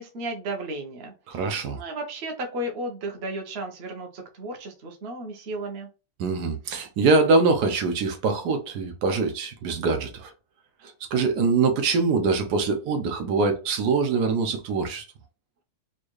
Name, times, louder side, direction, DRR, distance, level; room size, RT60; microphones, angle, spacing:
voice 1, 0.0-5.9, right 1 dB, 45° right, 1.0 m, -34 dB
voice 2, 1.3-1.8 6.2-10.3 11.1-15.0, right 4 dB, 85° right, 1.4 m, -23 dB
4.4 x 2.5 x 3.0 m
omnidirectional pair, 1.7 m